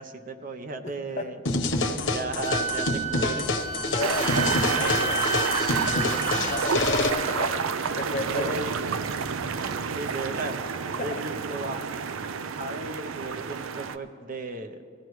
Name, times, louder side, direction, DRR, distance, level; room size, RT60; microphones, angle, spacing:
voice 1, 0.0-1.4 2.1-3.5 6.1-6.3 8.3-8.8 9.1-10.6 11.0-11.8 12.6-14.8, right 2 dB, 45° right, 8 dB, 0.6 m, -35 dB
voice 2, 0.8-1.3 3.9-5.2 5.7-8.5 11.0-11.2, left 3 dB, 40° left, 7 dB, 0.6 m, -34 dB
sound 1, 1.5-7.1, left 2 dB, 70° left, 1.1 m, -27 dB
Wind instrument woodwind instrument, 2.5-7.6, right 4 dB, 15° right, 0.9 m, -31 dB
sound 2, 4.0-14.0, right 6 dB, 90° right, 0.5 m, -30 dB
20.0 x 14.5 x 3.1 m, 2.2 s
head